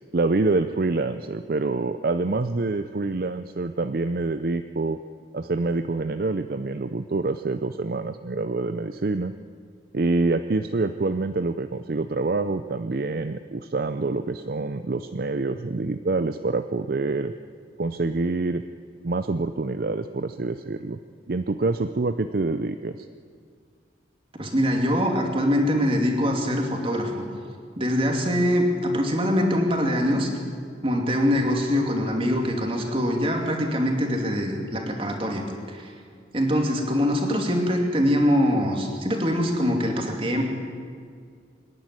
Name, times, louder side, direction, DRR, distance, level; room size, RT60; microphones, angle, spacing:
voice 1, 0.1-5.0 5.3-9.3 9.9-17.3 17.8-18.6 19.0-21.0 21.3-23.0, right 3 dB, 55° right, 10 dB, 0.5 m, -26 dB
voice 2, 24.4-27.2 27.8-30.3 30.8-35.9 36.3-40.4, equal, 30° right, 2 dB, 2.6 m, -23 dB
25.5 x 11.0 x 9.7 m, 2.1 s
head